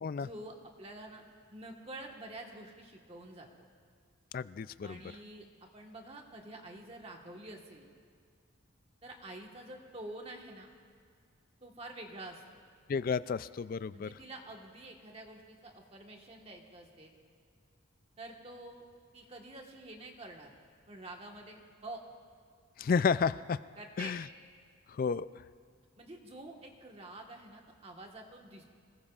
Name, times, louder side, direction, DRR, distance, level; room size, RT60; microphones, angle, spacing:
voice 1, 0.2-1.2 1.5-3.7 4.8-7.9 9.0-10.7 11.6-12.6 13.9-17.1 18.2-18.8 19.1-20.6 20.9-22.0 23.8-24.1 26.0-28.6, right 1 dB, 30° right, 1 dB, 1.4 m, -48 dB
voice 2, 4.3-5.0 12.9-14.1 22.8-23.6 24.0-24.2 25.0-25.3, left 5 dB, 45° left, 16 dB, 0.3 m, -31 dB
26.0 x 19.5 x 2.4 m, 2.1 s
head